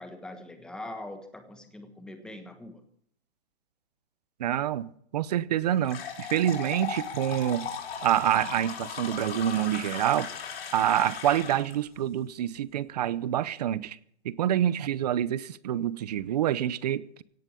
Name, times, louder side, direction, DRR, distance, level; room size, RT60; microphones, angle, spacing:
voice 1, 0.0-2.8, left 1 dB, ahead, 1.3 m, -42 dB
voice 2, 4.4-7.7 8.0-10.3 10.7-14.0 14.2-17.2, right 11 dB, 40° right, 0.7 m, -27 dB
sound 1, 5.8-11.7, left 7 dB, 60° left, 4.4 m, -37 dB
17.0 x 8.9 x 8.3 m
hypercardioid pair, 160°, 33 cm